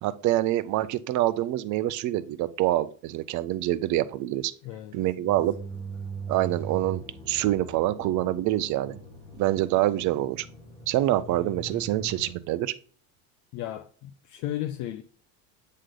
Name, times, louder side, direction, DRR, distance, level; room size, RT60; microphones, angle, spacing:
voice 1, 0.0-4.5 4.9-5.5 6.3-9.0 9.4-10.5 10.9-12.7, right 14 dB, 45° right, 0.6 m, -26 dB
voice 2, 4.6-5.3 13.5-15.0, left 13 dB, 50° left, 0.5 m, -35 dB
sound 1, 5.3-12.3, right 3 dB, 10° left, 1.7 m, -40 dB
7.8 x 3.3 x 3.8 m
supercardioid pair, 125°, 40 cm